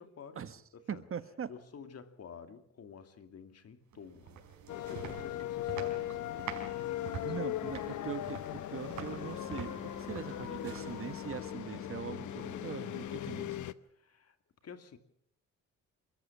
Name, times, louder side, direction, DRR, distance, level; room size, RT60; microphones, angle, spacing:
voice 1, 0.0-0.4 0.7-1.0 1.5-7.5 7.8-8.2 12.4-12.7 13.9-14.4 14.6-15.0, left 6 dB, 55° left, 2.5 m, -51 dB
voice 2, 0.9-1.5 7.2-13.7, right 7 dB, 45° right, 1.4 m, -42 dB
sound 1, 3.9-11.7, right 8 dB, 75° right, 4.7 m, -47 dB
Taipei air raid sirens, 4.7-13.7, left 13 dB, 75° left, 0.9 m, -39 dB
Wind instrument woodwind instrument, 8.9-13.6, left 5 dB, 20° left, 2.0 m, -47 dB
27.5 x 14.0 x 7.2 m
cardioid pair, 90°, 30 cm